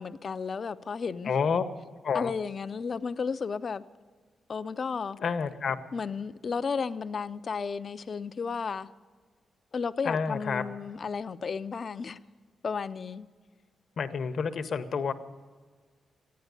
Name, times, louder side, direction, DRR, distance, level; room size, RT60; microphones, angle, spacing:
voice 1, 0.0-1.3 2.1-3.9 4.5-5.2 5.9-8.9 9.7-12.2 12.6-13.3, left 5 dB, 50° left, 0.5 m, -33 dB
voice 2, 1.2-1.6 2.0-2.3 5.2-5.8 10.0-10.6 14.0-15.1, left 6 dB, 65° left, 0.9 m, -29 dB
14.5 x 10.5 x 9.5 m
cardioid pair, 90°, 0 cm